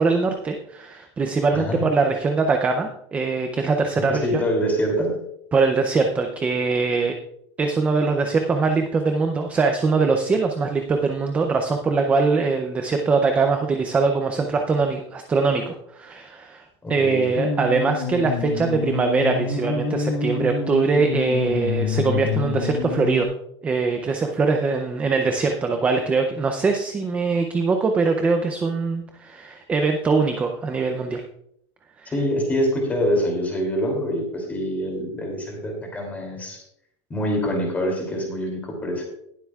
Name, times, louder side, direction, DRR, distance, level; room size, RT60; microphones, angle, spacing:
voice 1, 0.0-4.2 5.5-7.1 7.6-16.6 16.9-23.3 23.6-31.2 32.0-32.1, right 4 dB, 10° right, 5 dB, 0.5 m, -22 dB
voice 2, 4.1-5.1 16.8-17.2 32.1-36.6 37.1-39.0, equal, 10° left, 1 dB, 2.8 m, -25 dB
sound 1, 17.3-23.2, left 5 dB, 60° left, 1.4 m, -27 dB
19.5 x 7.7 x 2.4 m, 0.72 s
supercardioid pair, 175°, 15 cm